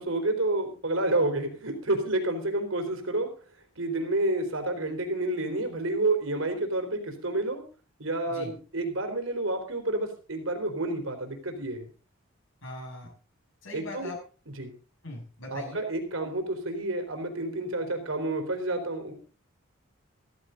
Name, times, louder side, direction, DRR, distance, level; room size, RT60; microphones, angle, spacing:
voice 1, 0.0-3.3 3.8-7.6 8.0-11.9 13.7-14.1 14.6-14.7 15.5-19.1, right 2 dB, 75° right, 5 dB, 3.9 m, -29 dB
voice 2, 12.6-13.1 13.6-14.2 15.0-15.8, left 1 dB, 65° left, -2 dB, 6.4 m, -40 dB
15.5 x 14.5 x 3.9 m, 0.36 s
head